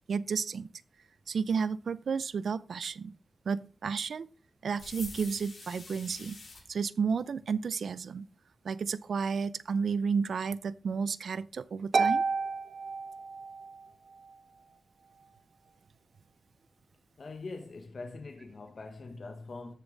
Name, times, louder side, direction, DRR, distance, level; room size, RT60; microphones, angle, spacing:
voice 1, 0.1-0.7 1.3-3.1 3.5-4.3 4.6-6.4 6.7-8.2 8.6-12.2, right 5 dB, 80° right, 0.5 m, -32 dB
sound 1, 4.8-6.6, left 3 dB, 80° left, 5.4 m, -46 dB
Harp, 11.9-13.8, right 4 dB, 65° right, 1.0 m, -30 dB
voice 2, 17.2-19.7, left 3 dB, 60° left, 1.4 m, -43 dB
13.5 x 7.2 x 3.9 m
cardioid pair, 75°, 0 cm